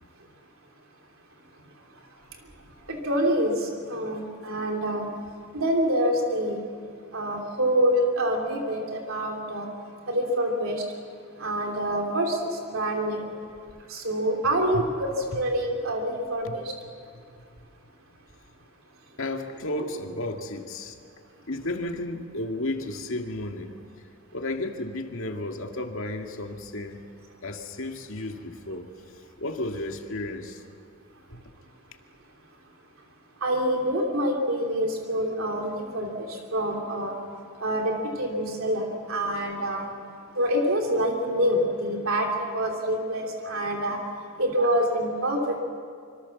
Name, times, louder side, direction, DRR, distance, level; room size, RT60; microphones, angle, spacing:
voice 1, 2.9-5.1 5.5-6.6 7.1-9.7 10.1-10.8 11.4-13.3 13.9-16.7 33.4-37.1 37.6-39.9 40.3-44.0 44.4-45.6, equal, 70° right, 2 dB, 3.1 m, -26 dB
voice 2, 17.1-17.7 19.2-21.0 21.5-23.8 24.3-27.0 27.4-30.6 31.3-31.5, left 1 dB, 65° left, 4 dB, 2.1 m, -33 dB
26.5 x 26.0 x 7.2 m, 2.3 s
head